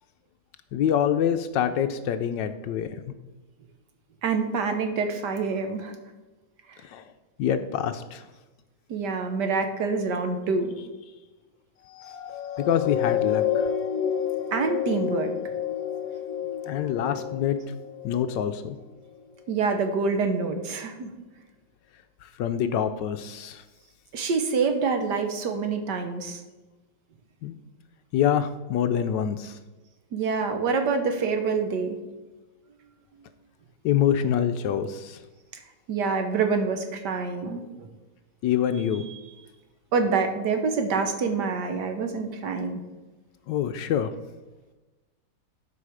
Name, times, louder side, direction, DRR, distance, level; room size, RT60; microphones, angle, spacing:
voice 1, 0.7-2.9 6.8-7.0 7.4-8.2 12.6-13.7 16.7-17.6 18.0-18.8 22.2-23.6 27.4-27.5 28.1-29.6 33.8-35.2 38.4-39.0 43.5-44.1, left 9 dB, 75° left, 9 dB, 1.1 m, -25 dB
voice 2, 4.2-5.9 6.7-6.8 8.9-10.7 14.5-15.3 19.5-21.1 24.1-26.4 30.1-32.0 35.9-37.9 39.1-39.2 39.9-42.8, right 4 dB, 65° right, 6 dB, 1.5 m, -26 dB
sound 1, 11.9-18.6 19.2-19.3, left 9 dB, 50° left, 1.4 m, -29 dB
12.5 x 5.0 x 4.9 m, 1.2 s
omnidirectional pair, 2.2 m